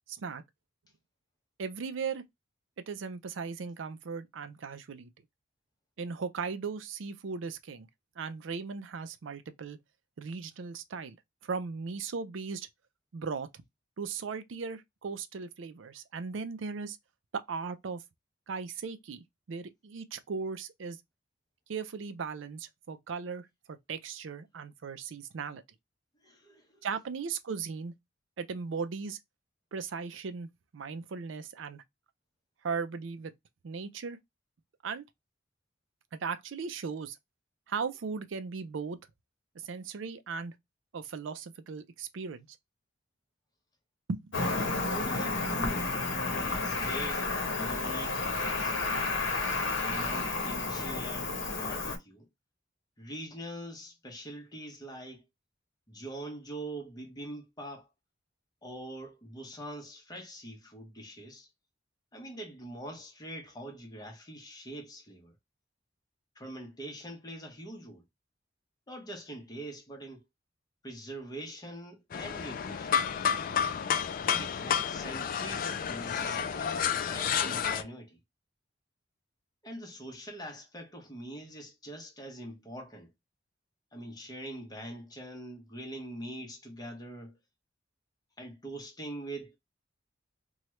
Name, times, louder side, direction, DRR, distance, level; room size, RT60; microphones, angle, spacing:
voice 1, 1.6-2.2 2.9-5.1 6.0-7.9 8.2-9.8 10.2-11.2 11.5-12.7 13.1-13.5 14.0-17.0 17.5-18.0 18.5-21.0 21.7-25.6 26.8-27.9 28.4-29.2 29.7-31.8 32.6-33.3 33.6-34.2 34.8-35.0 36.1-37.2 37.7-39.0 39.6-40.5 40.9-42.5 44.1-44.3, right 5 dB, 80° right, 0.5 m, -37 dB
voice 2, 26.2-26.9 44.9-46.0 46.4-48.8 49.7-52.3 53.0-55.2 55.9-57.9 58.6-61.5 62.1-65.3 66.3-68.0 68.9-70.2 70.8-73.0 74.2-78.2 79.6-83.1 83.9-87.4 88.4-89.6, right 1 dB, 20° left, 1.0 m, -43 dB
Cricket, 44.3-52.0, left 3 dB, 75° left, 0.9 m, -31 dB
sound 1, 72.1-77.8, left 7 dB, 45° left, 0.4 m, -30 dB
2.9 x 2.3 x 3.0 m
head